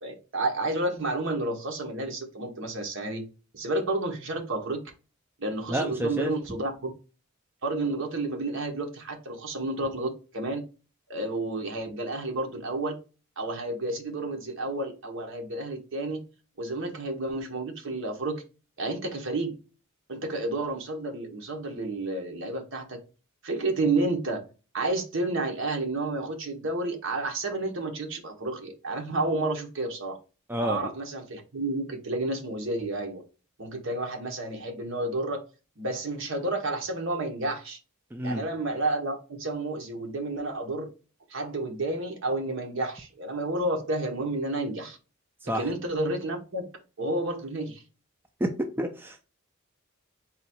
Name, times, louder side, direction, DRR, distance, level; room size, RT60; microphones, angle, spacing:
voice 1, 0.0-3.2 3.5-4.8 5.4-6.9 7.6-10.6 11.1-13.0 13.4-16.2 16.6-18.4 18.8-19.6 20.1-23.0 23.4-24.4 24.7-30.2 30.6-33.2 33.6-35.4 35.8-37.8 38.2-40.9 41.3-45.0 45.4-46.7 47.0-47.8, right 2 dB, 60° right, 1.0 m, -30 dB
voice 2, 5.7-6.3 30.5-30.8 38.1-38.4 45.4-45.6 48.4-48.5 48.8-49.2, right 1 dB, 10° right, 0.3 m, -29 dB
3.9 x 2.3 x 4.2 m
head